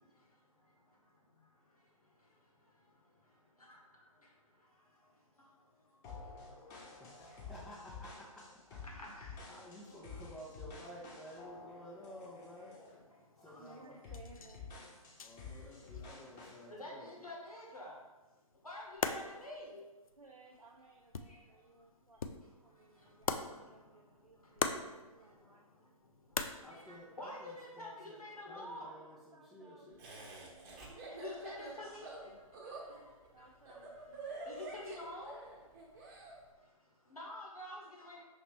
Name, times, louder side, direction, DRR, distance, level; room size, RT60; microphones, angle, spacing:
sound 1, 6.0-13.0 13.4-13.6 14.0-16.6, left 4 dB, 20° left, 0.8 m, -51 dB
voice 1, 7.0-8.8 9.5-12.8 13.3-14.0 15.2-17.2 26.6-30.0, equal, 5° left, -10 dB, 0.4 m, -53 dB
voice 2, 8.8-9.3 13.5-13.6 16.7-17.9 18.6-19.8 26.8-28.9 31.1-32.3 32.6-32.7 34.5-35.4 37.1-38.1, left 1 dB, 90° left, -3 dB, 1.3 m, -47 dB
sound 2, 11.4-28.2, left 5 dB, 70° left, 0.4 m, -45 dB
voice 3, 13.6-14.7 20.1-25.6 29.1-31.3 33.3-35.3, right 3 dB, 90° right, -1 dB, 0.5 m, -61 dB
Laughter, 30.0-36.4, right 2 dB, 30° right, 0.8 m, -47 dB
5.6 x 2.9 x 3.1 m, 1.1 s
figure-of-eight pair, 130°, 18 cm